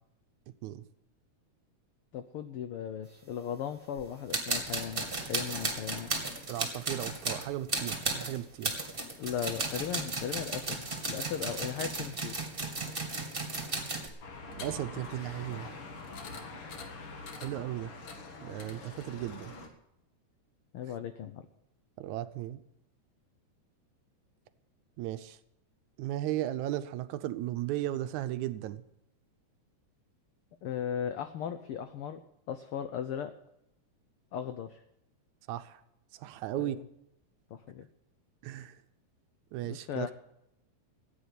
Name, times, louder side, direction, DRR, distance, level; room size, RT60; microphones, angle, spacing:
voice 1, 2.1-6.1 9.2-12.4 20.7-21.4 30.6-32.2 32.5-33.3 34.3-34.8 36.6-36.8 37.5-37.9 39.6-40.1, left 8 dB, 80° left, 1.2 m, -37 dB
sound 1, 4.0-4.1 4.3-14.1, right 3 dB, 20° right, 2.0 m, -35 dB
voice 2, 6.5-8.7 14.6-15.7 17.4-17.9 18.4-19.5 22.0-22.6 25.0-25.4 26.0-28.8 35.5-35.8 36.1-36.8 38.4-38.8 39.5-40.1, right 13 dB, 80° right, 2.1 m, -36 dB
sound 2, 14.2-19.7, left 3 dB, 50° left, 2.3 m, -44 dB
14.5 x 9.4 x 8.2 m
omnidirectional pair, 3.4 m